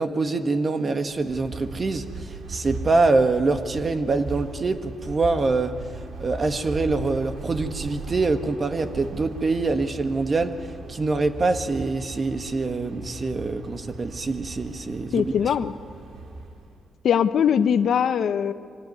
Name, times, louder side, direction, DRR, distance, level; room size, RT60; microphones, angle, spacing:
voice 1, 0.0-5.7 6.2-10.6 10.9-15.5, right 3 dB, 40° right, 8 dB, 1.6 m, -25 dB
sound 1, 1.1-16.8, right 3 dB, 80° right, 2.7 m, -38 dB
voice 2, 15.1-15.7 17.0-18.5, left 8 dB, 70° left, 12 dB, 0.8 m, -21 dB
24.0 x 18.0 x 9.6 m, 2.3 s
cardioid pair, 85°, 0 cm